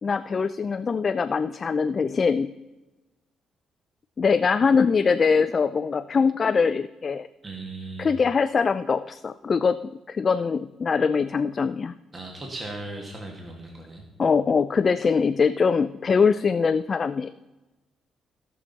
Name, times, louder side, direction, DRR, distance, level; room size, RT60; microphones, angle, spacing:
voice 1, 0.0-2.5 4.2-7.3 8.0-9.8 10.1-11.9 14.2-17.5, left 5 dB, 40° left, 11 dB, 0.3 m, -22 dB
voice 2, 7.4-8.1 12.1-14.0, right 2 dB, 30° right, 0 dB, 1.7 m, -37 dB
16.5 x 5.9 x 4.0 m, 1.1 s
cardioid pair, 90°, 0 cm